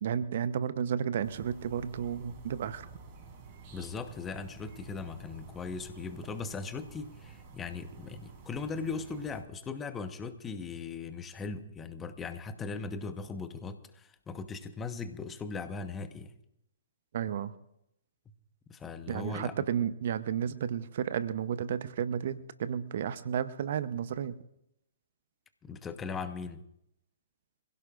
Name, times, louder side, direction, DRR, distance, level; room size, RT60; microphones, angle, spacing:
voice 1, 0.0-2.9 17.1-17.5 19.1-24.4, right 8 dB, 55° right, 13 dB, 0.8 m, -32 dB
sound 1, 1.2-9.4, right 4 dB, 40° right, 3.5 m, -51 dB
voice 2, 3.7-16.3 18.7-19.5 25.6-26.6, left 4 dB, 15° left, 9 dB, 1.2 m, -39 dB
26.5 x 16.0 x 2.5 m, 0.80 s
figure-of-eight pair, 125°, 0 cm